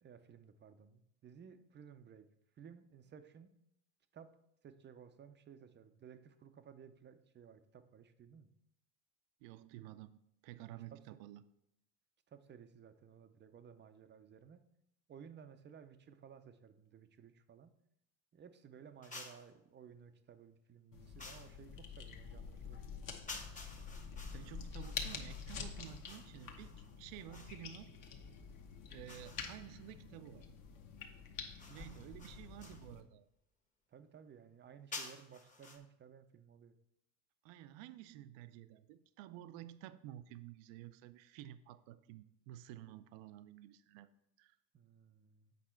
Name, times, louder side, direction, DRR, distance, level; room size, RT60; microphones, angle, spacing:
voice 1, 0.0-2.3 2.6-3.5 4.1-4.3 4.6-8.5 10.7-11.2 12.3-14.6 15.1-17.7 18.3-23.2 31.7-32.2 33.9-36.7 44.7-45.5, right 7 dB, 25° right, 9 dB, 0.4 m, -57 dB
voice 2, 9.4-11.4 24.3-28.0 28.9-30.5 31.7-33.3 37.4-44.1 44.4-44.6, right 13 dB, 80° right, 13 dB, 0.6 m, -52 dB
sound 1, 19.0-19.5 21.2-21.6 23.3-27.6 29.1-29.9 31.6-32.9 34.9-35.8, left 3 dB, 15° left, 1.0 m, -52 dB
sound 2, 20.9-33.0, left 6 dB, 45° left, 1.1 m, -48 dB
8.3 x 5.4 x 4.4 m, 0.79 s
cardioid pair, 140°, 45 cm